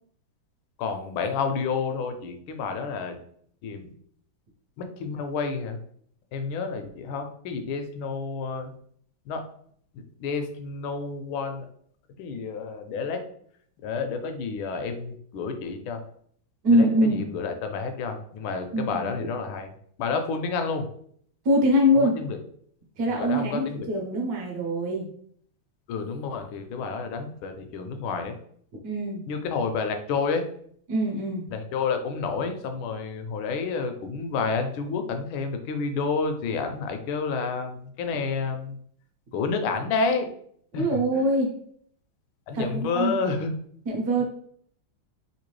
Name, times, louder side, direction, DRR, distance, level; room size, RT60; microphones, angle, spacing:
voice 1, 0.8-3.2 3.6-3.9 4.8-5.8 6.3-8.7 9.3-9.4 9.9-11.7 12.2-13.2 13.8-16.0 16.7-19.7 20.0-20.9 22.0-22.4 23.1-23.9 25.9-28.3 29.3-30.4 31.5-38.8 39.3-40.3 40.7-40.9 41.1-41.2 42.5-43.5, left 4 dB, 75° left, 6 dB, 1.3 m, -30 dB
voice 2, 16.6-17.2 18.7-19.1 21.4-22.2 23.0-25.1 28.8-29.3 30.9-31.4 40.7-41.6 42.5-43.2 43.9-44.2, equal, 55° right, 0 dB, 1.2 m, -23 dB
3.6 x 2.7 x 3.1 m, 0.62 s
omnidirectional pair, 2.3 m